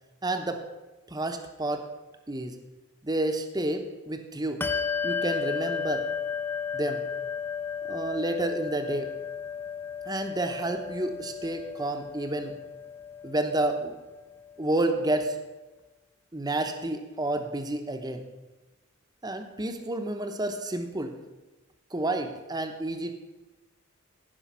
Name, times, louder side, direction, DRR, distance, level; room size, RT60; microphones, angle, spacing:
voice 1, 0.2-0.6 1.1-1.9 2.3-2.6 3.0-4.6 5.0-6.1 6.7-7.0 7.8-9.1 10.1-12.6 13.2-14.0 14.6-15.4 16.3-18.2 19.2-21.2 21.9-23.1, right 2 dB, 20° right, 6 dB, 0.9 m, -30 dB
Bell, 4.6-14.6, left 6 dB, 10° left, 0.4 m, -34 dB
16.0 x 5.5 x 5.6 m, 1.1 s
head